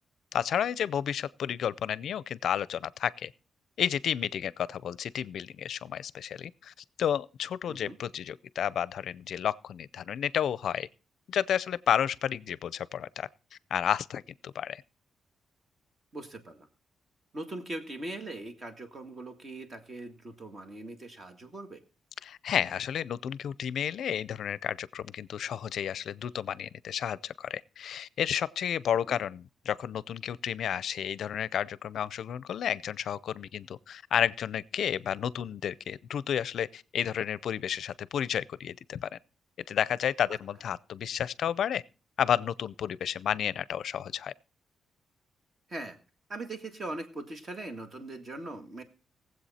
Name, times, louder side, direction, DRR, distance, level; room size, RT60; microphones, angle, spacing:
voice 1, 0.3-3.3 3.8-10.9 11.3-13.3 13.7-14.8 22.2-39.2 39.7-41.8 42.2-44.3, left 9 dB, 65° left, 0.5 m, -31 dB
voice 2, 16.1-16.7 17.3-21.8 29.1-29.2 40.3-40.4 45.7-46.0 46.3-48.8, right 2 dB, 30° right, 1.8 m, -40 dB
20.0 x 7.9 x 4.2 m
wide cardioid pair, 160°, 0 cm